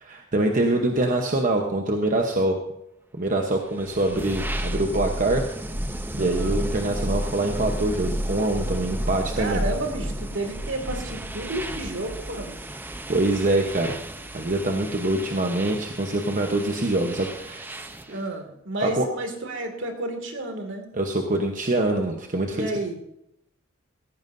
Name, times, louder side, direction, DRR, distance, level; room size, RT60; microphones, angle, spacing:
voice 1, 0.0-2.6 3.1-5.4 6.1-9.6 13.1-13.9 14.3-17.8 18.1-18.2 18.8-19.1 20.9-22.7, right 2 dB, 40° right, 3 dB, 1.0 m, -24 dB
sound 1, 3.6-18.2, equal, 10° right, 0.7 m, -32 dB
voice 2, 6.2-6.6 9.3-12.6 18.1-20.9 22.4-22.9, right 2 dB, 65° right, 4 dB, 2.2 m, -31 dB
16.0 x 14.5 x 2.7 m, 0.81 s
head